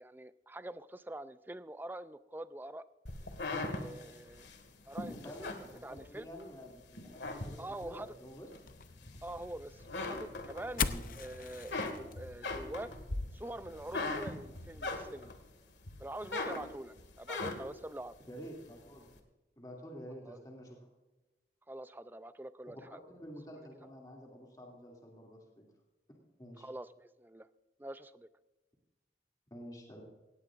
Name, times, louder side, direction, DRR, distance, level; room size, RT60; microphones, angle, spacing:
voice 1, 0.0-2.9 3.5-4.5 4.9-5.3 5.8-6.3 7.6-8.1 9.2-12.9 13.3-15.3 16.0-18.2 20.2-20.4 21.7-23.0 23.6-23.9 26.6-27.5 27.8-28.3, right 1 dB, 10° right, 13 dB, 0.4 m, -45 dB
sound 1, 3.1-6.5 6.9-8.0 8.5-9.5 9.8-11.1 11.4-15.4 15.8-17.8, left 2 dB, 80° left, 1.9 m, -39 dB
voice 2, 5.0-8.5 10.8-11.1 18.3-19.1 19.6-20.8 22.7-22.8 23.1-25.6 26.4-26.7 29.5-30.0, equal, 20° left, -2 dB, 2.6 m, -49 dB
sound 2, 8.7-15.4, left 6 dB, 50° left, 0.6 m, -43 dB
17.5 x 17.0 x 2.5 m, 1.1 s
head